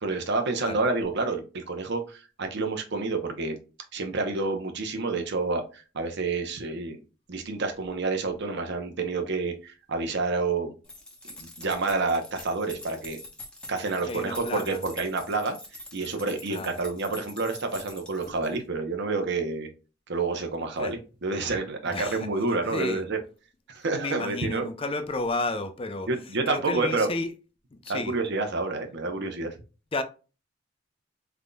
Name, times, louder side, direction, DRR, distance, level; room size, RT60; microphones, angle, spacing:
voice 1, 0.0-3.6 3.9-7.0 7.3-10.7 11.4-13.2 13.7-15.6 15.9-19.7 20.1-23.2 23.7-24.7 26.1-27.1 27.9-29.5, right 3 dB, 65° right, 0.8 m, -29 dB
sound 1, 10.8-18.6, left 1 dB, 5° left, 0.9 m, -45 dB
voice 2, 14.0-14.8 16.5-16.8 20.8-20.9 21.9-22.3 22.7-23.1 23.9-26.1 26.5-27.3 27.7-28.1 29.9-30.0, left 2 dB, 30° left, 0.5 m, -32 dB
3.8 x 3.5 x 2.2 m
head